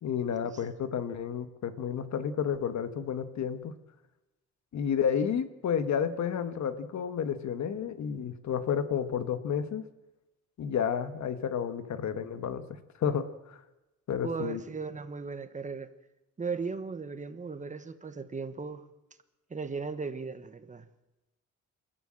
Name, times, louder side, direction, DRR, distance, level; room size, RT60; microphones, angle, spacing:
voice 1, 0.0-3.8 4.7-9.8 10.6-13.6 14.1-14.6, left 8 dB, 70° left, 1.5 m, -31 dB
voice 2, 14.2-15.9 16.4-18.9 19.5-20.9, right 4 dB, 25° right, 1.2 m, -37 dB
28.5 x 13.0 x 7.7 m
wide cardioid pair, 175°, 30 cm